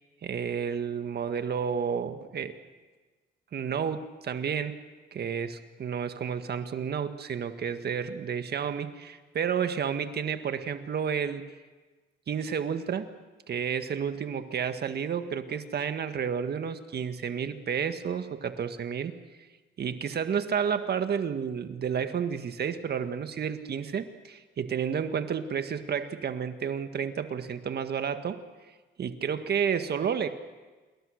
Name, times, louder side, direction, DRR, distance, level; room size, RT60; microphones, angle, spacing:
voice 1, 0.2-2.5 3.5-4.8 5.1-11.5 12.3-13.1 13.5-19.1 19.8-28.4 29.0-30.3, right 7 dB, 55° right, 9 dB, 1.7 m, -31 dB
28.0 x 21.5 x 6.6 m, 1.3 s
cardioid pair, 90°, 20 cm